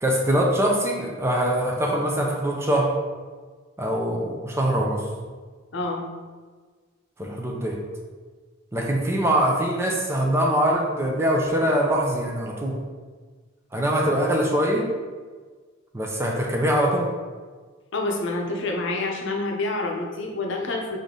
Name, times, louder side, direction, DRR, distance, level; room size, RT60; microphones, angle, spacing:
voice 1, 0.0-2.9 3.8-5.1 7.2-7.8 8.7-12.8 13.7-14.9 15.9-17.1, right 1 dB, 10° right, -1 dB, 0.5 m, -23 dB
voice 2, 5.7-6.1 17.9-21.0, left 2 dB, 60° left, 1 dB, 0.7 m, -27 dB
5.1 x 2.7 x 3.8 m, 1.5 s
head